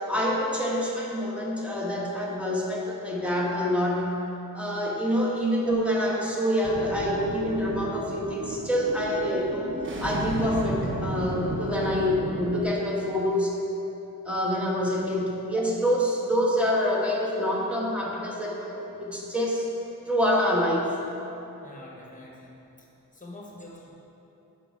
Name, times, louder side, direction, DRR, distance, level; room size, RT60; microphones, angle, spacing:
voice 1, 0.0-4.1 4.5-9.7 10.0-13.5 14.2-19.7 20.1-20.9, equal, 5° right, -4 dB, 1.2 m, -26 dB
sound 1, 6.6-12.6, right 2 dB, 35° right, 0.9 m, -34 dB
voice 2, 21.6-22.5 23.1-23.9, left 1 dB, 20° left, -3 dB, 1.2 m, -45 dB
6.8 x 5.2 x 4.8 m, 2.9 s
wide cardioid pair, 115°, 35 cm